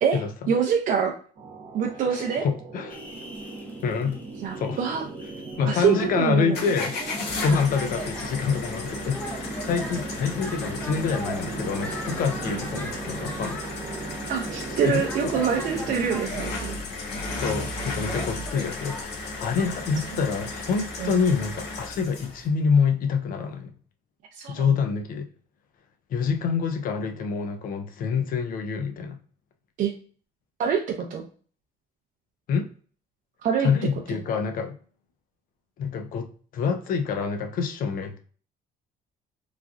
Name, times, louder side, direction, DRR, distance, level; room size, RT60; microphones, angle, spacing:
voice 1, 0.0-1.1 1.7-2.5 4.4-5.0 5.6-6.6 12.4-12.6 14.3-16.8 20.1-20.3 21.0-21.2 24.4-24.7 29.8-29.9 30.6-31.3 33.4-33.7, right 7 dB, 50° right, 2 dB, 0.4 m, -25 dB
sound 1, 1.3-16.2, right 3 dB, 80° right, 0.8 m, -38 dB
voice 2, 2.4-3.0 3.8-4.2 4.6-4.8 5.6-7.0 7.4-13.6 14.8-15.3 17.4-23.7 24.5-25.3 26.1-29.2 32.5-32.7 33.6-34.8 35.8-38.2, left 5 dB, 55° left, 6 dB, 0.5 m, -26 dB
sound 2, 2.9-13.8 14.3-14.4 14.7-14.8 15.1-17.3 18.0-19.0, equal, 10° left, 0.7 m, -40 dB
sound 3, 6.5-22.5, left 2 dB, 75° left, 0.8 m, -34 dB
3.1 x 2.3 x 2.3 m, 0.43 s
cardioid pair, 110°, 17 cm